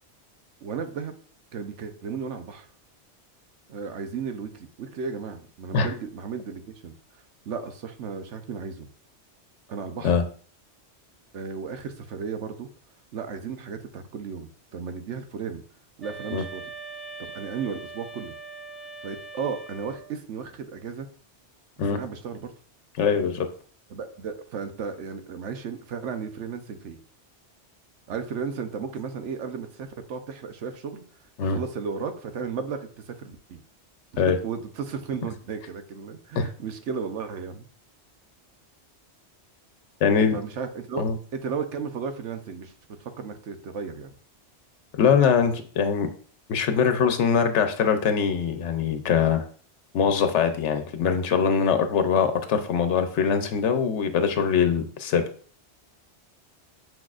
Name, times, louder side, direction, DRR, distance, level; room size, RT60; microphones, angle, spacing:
voice 1, 0.6-1.1 1.5-2.7 3.7-8.9 9.7-10.1 11.3-12.7 13.1-15.6 16.0-16.7 17.2-18.3 19.0-21.1 21.9-22.5 23.9-27.0 28.1-31.0 31.4-33.6 34.1-37.7 40.3-41.0 41.3-44.1, right 6 dB, 90° right, 8 dB, 1.1 m, -34 dB
sound 1, 16.0-20.2, right 4 dB, ahead, 1.3 m, -41 dB
voice 2, 23.0-23.5 31.4-31.6 34.2-34.4 36.4-36.5 40.0-40.4 41.0-41.2 44.9-46.1 46.5-49.4 49.9-55.2, left 6 dB, 85° left, 8 dB, 1.0 m, -22 dB
6.8 x 6.2 x 2.4 m, 0.44 s
omnidirectional pair, 1.2 m